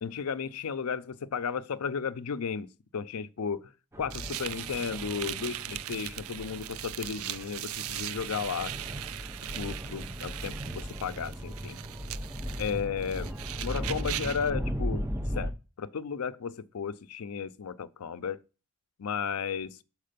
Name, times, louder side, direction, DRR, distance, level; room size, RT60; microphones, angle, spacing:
voice 1, 0.0-3.7 4.0-8.7 9.5-11.8 12.6-13.3 13.6-15.1 15.3-15.5 15.8-18.4 19.0-19.8, left 6 dB, 85° left, 0.5 m, -34 dB
sound 1, 3.9-15.5, equal, 10° right, 0.6 m, -37 dB
sound 2, 4.1-14.5, right 13 dB, 70° right, 0.4 m, -39 dB
6.6 x 4.7 x 5.1 m
head